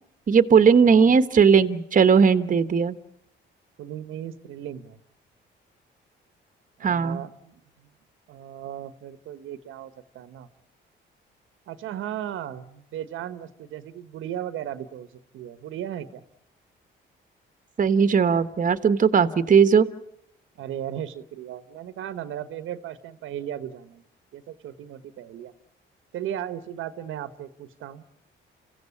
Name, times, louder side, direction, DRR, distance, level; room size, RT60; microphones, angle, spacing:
voice 1, 0.3-3.0 6.8-7.2 17.8-19.9, right 6 dB, 40° right, 11 dB, 1.3 m, -18 dB
voice 2, 0.8-1.1 3.8-5.0 6.8-7.9 8.3-10.5 11.7-15.1 15.3-16.2 20.6-24.0 24.3-25.5 26.1-28.0, right 10 dB, 85° right, 12 dB, 1.3 m, -36 dB
28.0 x 16.0 x 8.6 m, 0.77 s
cardioid pair, 90°, 20 cm